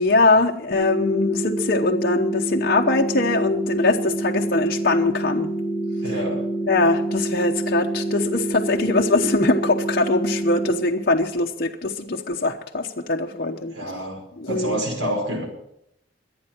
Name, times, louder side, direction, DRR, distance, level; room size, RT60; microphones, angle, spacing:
voice 1, 0.0-5.5 6.0-6.1 6.7-13.9 14.4-14.8, left 3 dB, 50° left, 0 dB, 0.9 m, -22 dB
sound 1, 0.7-10.7, right 2 dB, 35° left, 5.5 m, -27 dB
voice 2, 6.0-6.4 13.7-14.2 14.5-15.5, right 1 dB, 80° right, 2 dB, 5.1 m, -27 dB
23.0 x 8.8 x 4.5 m, 0.76 s
head